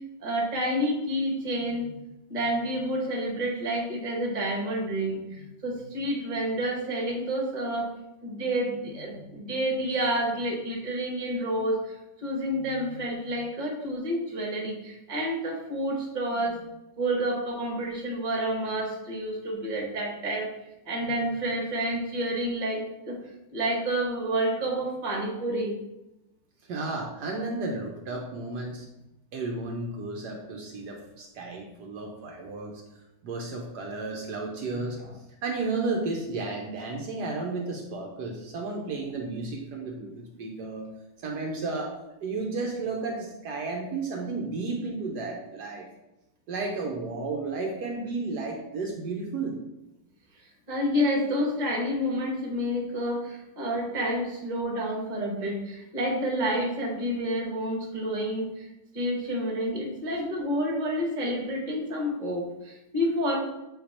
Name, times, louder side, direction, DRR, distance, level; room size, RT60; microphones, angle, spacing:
voice 1, 0.2-2.0 2.3-7.9 8.2-16.6 17.0-20.5 20.9-22.8 23.1-23.2 23.5-25.8 34.7-35.1 50.7-58.7 58.9-63.4, equal, 30° right, 0 dB, 1.2 m, -29 dB
voice 2, 26.6-28.9 29.3-32.8 33.2-35.0 35.4-40.9 41.2-42.0 42.2-45.9 46.5-49.6, right 3 dB, 70° right, 1 dB, 1.3 m, -33 dB
8.0 x 2.9 x 4.2 m, 0.92 s
omnidirectional pair, 1.9 m